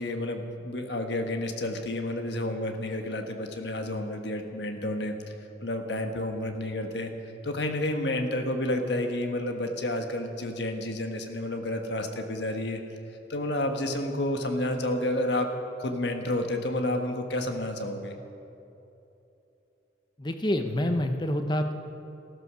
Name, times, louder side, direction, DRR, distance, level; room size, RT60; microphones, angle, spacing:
voice 1, 0.0-5.3 5.6-7.1 7.4-12.8 13.3-15.5 15.8-18.1, left 1 dB, 65° left, 5 dB, 1.5 m, -30 dB
voice 2, 20.2-21.7, left 1 dB, 25° left, 6 dB, 0.9 m, -27 dB
15.0 x 14.0 x 6.3 m, 2.9 s
head